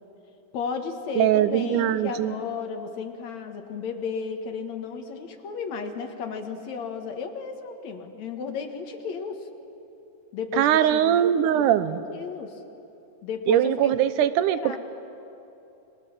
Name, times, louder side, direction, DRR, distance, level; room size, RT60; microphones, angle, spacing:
voice 1, 0.5-9.5 10.3-11.2 11.5-11.8 12.1-12.6 13.2-13.9 14.5-14.8, left 5 dB, 60° left, 5 dB, 2.8 m, -33 dB
voice 2, 1.2-2.4 10.5-12.0 13.5-14.8, right 11 dB, 80° right, 13 dB, 2.2 m, -21 dB
29.0 x 21.0 x 7.4 m, 2.9 s
omnidirectional pair, 3.7 m